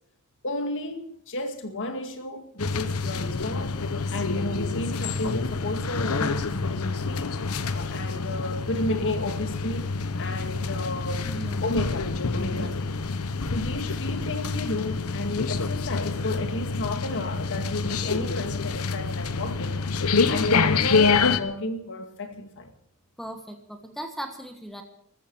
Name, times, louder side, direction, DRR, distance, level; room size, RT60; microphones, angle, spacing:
voice 1, 0.4-3.8 4.1-7.4 7.7-9.9 10.2-11.3 11.6-12.9 13.5-19.8 20.3-22.7, left 2 dB, 60° left, 2.1 m, -32 dB
sound 1, 2.6-21.4, left 4 dB, 85° left, 1.0 m, -27 dB
voice 2, 11.2-11.6 12.5-12.7 23.2-24.8, right 1 dB, ahead, 1.4 m, -38 dB
14.0 x 13.5 x 7.1 m
head